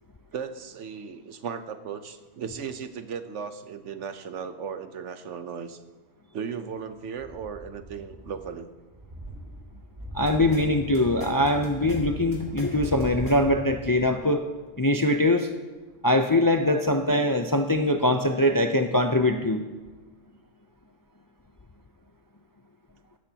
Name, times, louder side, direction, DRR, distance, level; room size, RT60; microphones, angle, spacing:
voice 1, 0.3-5.8 6.3-8.7, right 6 dB, 70° right, 9 dB, 1.1 m, -36 dB
sound 1, 7.2-8.6 8.9-14.2 14.5-14.6, right 1 dB, 35° right, 4.8 m, -40 dB
voice 2, 10.1-14.4 14.8-15.5 16.0-19.6, left 1 dB, 25° left, 6 dB, 0.4 m, -22 dB
sound 2, 10.2-10.6 10.9-12.0 12.3-13.3, right 1 dB, 40° left, 3.4 m, -40 dB
16.0 x 13.0 x 2.9 m, 1.3 s
omnidirectional pair, 1.3 m